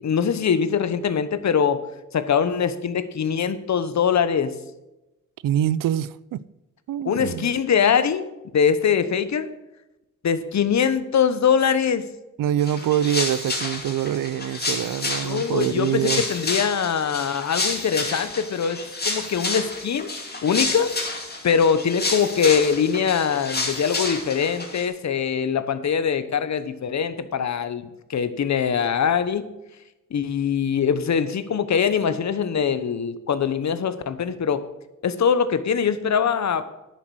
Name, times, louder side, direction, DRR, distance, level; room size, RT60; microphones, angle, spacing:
voice 1, 0.0-1.8 2.1-4.5 7.0-8.3 8.5-9.5 10.2-12.1 15.2-18.8 19.0-20.1 20.4-20.9 21.4-29.5 30.1-34.6 35.0-36.7, left 7 dB, 55° left, 1.0 m, -22 dB
voice 2, 5.4-6.4 6.9-7.5 12.4-16.2, right 11 dB, 85° right, 0.5 m, -24 dB
sound 1, 12.6-24.9, left 3 dB, 30° left, 2.5 m, -30 dB
10.5 x 7.6 x 6.3 m
cardioid pair, 80°, 32 cm